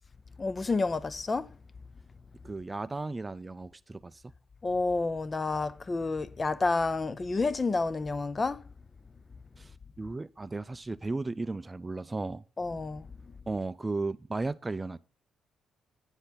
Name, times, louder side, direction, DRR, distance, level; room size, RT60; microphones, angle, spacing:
voice 1, 0.4-1.5 4.6-8.6 12.6-13.1, left 3 dB, 30° left, 0.6 m, -29 dB
voice 2, 2.4-4.2 9.6-12.4 13.5-15.0, right 3 dB, 20° right, 0.4 m, -35 dB
9.8 x 8.0 x 4.0 m
cardioid pair, 90°, 0 cm